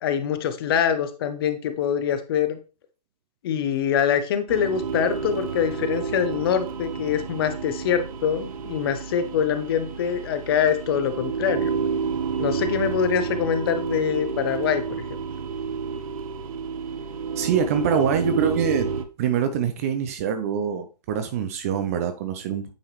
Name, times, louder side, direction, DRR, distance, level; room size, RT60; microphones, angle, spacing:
voice 1, 0.0-2.6 3.4-11.7 12.4-14.8, left 8 dB, 35° left, 0.7 m, -24 dB
sound 1, 4.5-19.1, right 5 dB, 55° right, 0.8 m, -30 dB
voice 2, 17.4-18.9 19.2-22.7, right 7 dB, 20° right, 0.4 m, -24 dB
8.7 x 3.6 x 3.0 m
hypercardioid pair, 140°, 21 cm